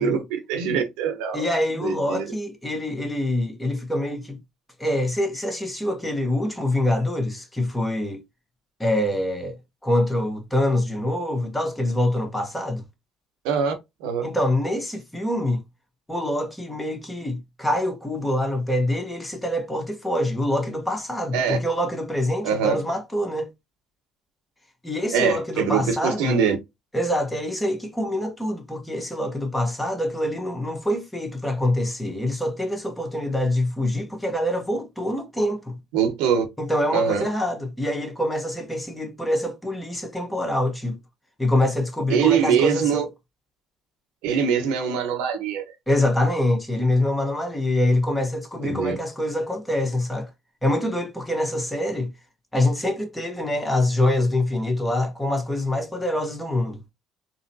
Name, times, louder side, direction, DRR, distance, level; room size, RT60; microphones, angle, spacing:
voice 1, 0.0-1.5 1.8-2.3 13.4-13.7 14.0-14.3 21.3-21.6 22.4-22.8 25.1-26.6 35.9-36.5 36.9-37.3 42.1-43.0 44.2-45.7 48.6-49.0, right 7 dB, 75° right, 0.9 m, -23 dB
voice 2, 1.3-4.4 4.8-8.2 8.8-9.6 9.8-12.8 14.2-15.6 16.1-23.5 24.8-26.4 26.9-35.8 36.6-41.0 41.4-43.1 45.9-50.3 50.6-52.1 52.5-56.8, left 1 dB, 10° left, 1.2 m, -25 dB
3.8 x 2.1 x 2.7 m
hypercardioid pair, 60°, 0 cm